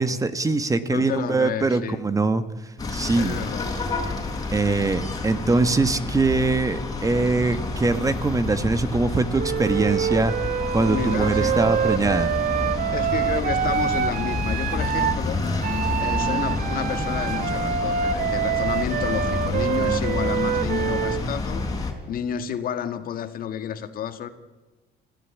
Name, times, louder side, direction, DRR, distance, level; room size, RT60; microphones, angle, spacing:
voice 1, 0.0-2.4 2.9-3.4 4.5-10.3 10.7-12.3, right 3 dB, 20° right, 12 dB, 1.4 m, -22 dB
voice 2, 0.8-2.0 3.1-3.8 4.7-4.9 10.8-11.6 12.9-15.4 16.0-21.7 22.1-24.3, left 8 dB, 60° left, 9 dB, 1.9 m, -31 dB
sound 1, 2.8-21.9, left 3 dB, 20° left, 4.4 m, -29 dB
Wind instrument woodwind instrument, 9.4-15.2 15.6-21.2, right 8 dB, 55° right, 1.0 m, -26 dB
26.5 x 16.0 x 8.4 m, 1.2 s
cardioid pair, 110°, 17 cm